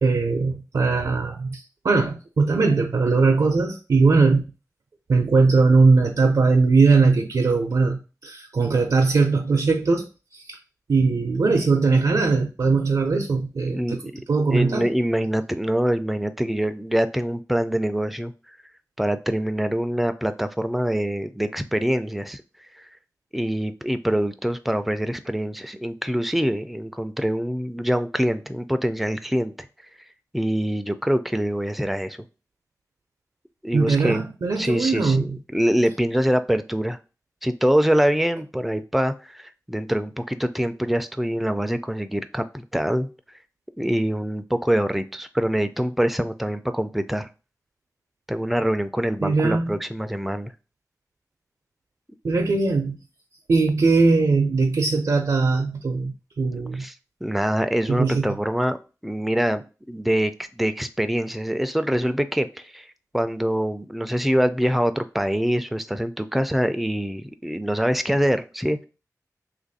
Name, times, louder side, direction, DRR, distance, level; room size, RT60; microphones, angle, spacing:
voice 1, 0.0-4.4 5.1-10.1 10.3-10.6 10.9-14.0 14.3-14.9 33.7-35.4 49.2-49.7 52.2-53.0 53.5-56.8 57.9-58.4, right 4 dB, 70° right, 3 dB, 0.5 m, -20 dB
voice 2, 13.7-14.2 14.5-18.3 19.0-22.4 22.7-22.8 23.3-29.7 30.3-32.2 33.6-34.2 34.6-37.0 37.4-43.1 43.8-47.3 48.3-50.5 56.5-56.9 57.2-58.8 59.0-62.9 63.1-68.9, equal, ahead, 10 dB, 0.3 m, -24 dB
3.0 x 2.5 x 3.9 m, 0.32 s
wide cardioid pair, 65°, 6 cm